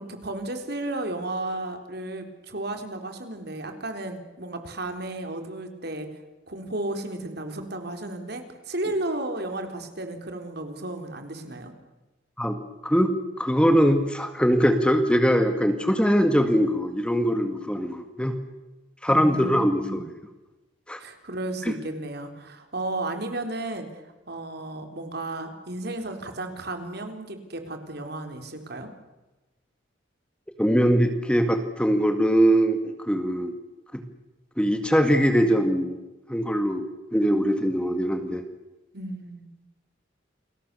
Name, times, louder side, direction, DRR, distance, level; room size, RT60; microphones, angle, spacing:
voice 1, 0.0-6.1 6.5-11.7 19.1-20.0 21.0-23.9 24.3-28.9 38.9-39.5, right 2 dB, 55° right, 6 dB, 3.9 m, -33 dB
voice 2, 12.4-18.4 19.0-20.0 20.9-21.0 30.6-33.5 33.9-34.0 34.6-36.0 36.3-36.8 37.1-38.4, equal, 5° left, 7 dB, 1.9 m, -22 dB
29.5 x 21.5 x 7.0 m, 1.1 s
head